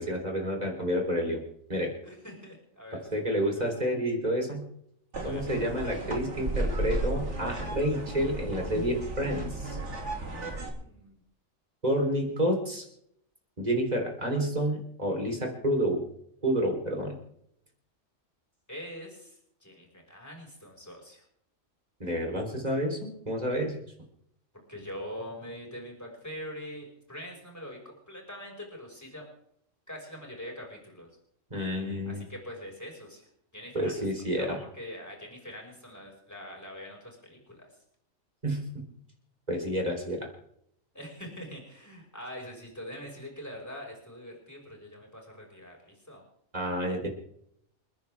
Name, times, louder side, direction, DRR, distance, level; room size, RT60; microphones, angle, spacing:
voice 1, 0.0-1.4 1.7-1.9 3.1-4.7 5.2-9.8 11.8-12.8 13.6-16.1 16.4-17.2 22.0-23.8 31.5-32.2 33.7-34.6 38.4-38.8 39.5-40.3 46.5-47.1, equal, 30° right, 1 dB, 4.1 m, -29 dB
voice 2, 2.0-3.5 5.2-5.4 10.1-11.2 15.2-15.6 18.7-21.2 24.7-29.3 29.9-31.1 32.0-33.2 33.5-34.0 34.4-37.7 40.9-46.2, equal, 10° left, -1 dB, 5.8 m, -44 dB
sound 1, 5.1-10.7, right 2 dB, 60° right, 3.0 m, -34 dB
29.5 x 10.0 x 3.6 m, 0.71 s
omnidirectional pair, 1.3 m